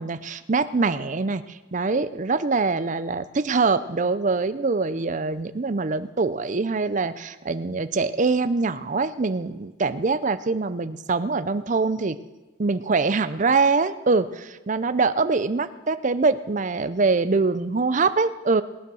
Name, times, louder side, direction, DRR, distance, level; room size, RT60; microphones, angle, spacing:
voice 1, 0.0-12.2 12.6-18.6, right 4 dB, 40° right, 13 dB, 0.5 m, -24 dB
19.0 x 9.4 x 6.3 m, 1.2 s
head